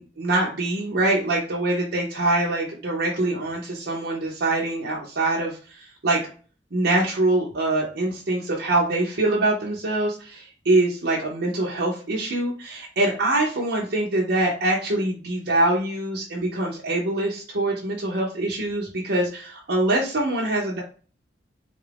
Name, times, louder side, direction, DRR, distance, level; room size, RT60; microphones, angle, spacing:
voice 1, 0.0-6.2 6.7-20.8, right 2 dB, 65° right, -4 dB, 0.8 m, -24 dB
3.7 x 2.5 x 3.3 m, 0.40 s
head